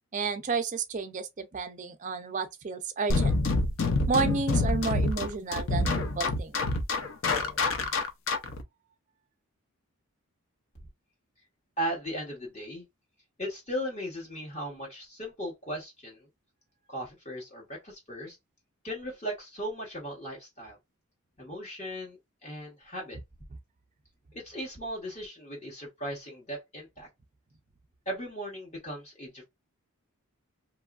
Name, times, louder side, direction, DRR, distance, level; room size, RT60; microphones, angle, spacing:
voice 1, 0.1-3.4 4.1-6.6, right 4 dB, 35° right, 0.4 m, -31 dB
sound 1, 3.1-8.6, left 3 dB, 60° left, 0.5 m, -27 dB
voice 2, 11.8-12.8 13.4-16.3 16.9-18.4 18.8-20.8 21.4-23.2 24.3-27.1 28.1-29.4, equal, 30° left, 1.0 m, -37 dB
2.9 x 2.3 x 2.3 m
head